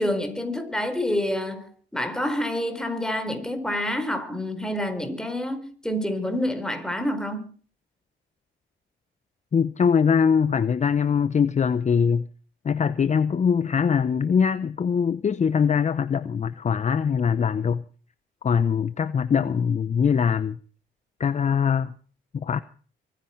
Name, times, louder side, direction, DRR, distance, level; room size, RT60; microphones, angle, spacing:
voice 1, 0.0-7.5, left 1 dB, 5° left, 4.4 m, -28 dB
voice 2, 9.5-12.3 12.6-17.8 18.4-20.6 21.2-21.9 22.3-22.6, left 6 dB, 35° left, 0.8 m, -22 dB
24.0 x 10.5 x 4.5 m
cardioid pair, 90°, 20 cm